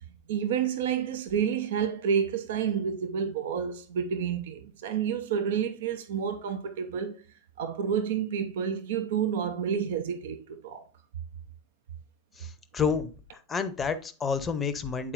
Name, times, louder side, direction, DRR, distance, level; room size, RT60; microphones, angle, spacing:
voice 1, 0.3-7.2 7.6-10.8, right 7 dB, 55° right, 0.7 m, -29 dB
voice 2, 12.7-13.1 13.5-15.1, left 6 dB, 20° left, 0.7 m, -29 dB
8.5 x 4.4 x 2.6 m
figure-of-eight pair, 90°, 0 cm